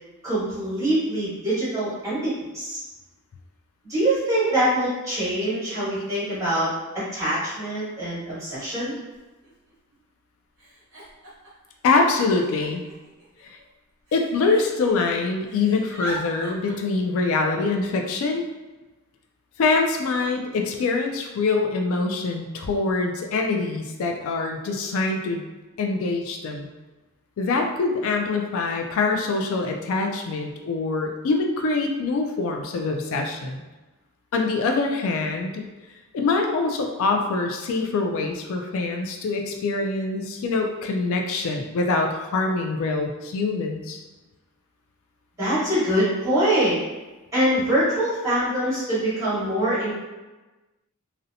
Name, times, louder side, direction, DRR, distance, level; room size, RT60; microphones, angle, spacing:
voice 1, 0.2-2.8 3.9-8.9 45.4-46.8 47.3-49.9, right 1 dB, 15° right, -11 dB, 1.2 m, -24 dB
Giggle, 9.1-9.2 9.4-9.9 10.6-11.7 12.3-13.6 14.1-15.1 15.4-16.7, right 1 dB, 70° right, 0.8 m, -41 dB
voice 2, 11.8-12.8 14.1-18.4 19.6-25.4 25.8-26.7 27.4-33.6 34.3-35.7 36.1-44.0, left 3 dB, 65° left, 3 dB, 0.3 m, -24 dB
2.7 x 2.0 x 2.6 m, 1.1 s
head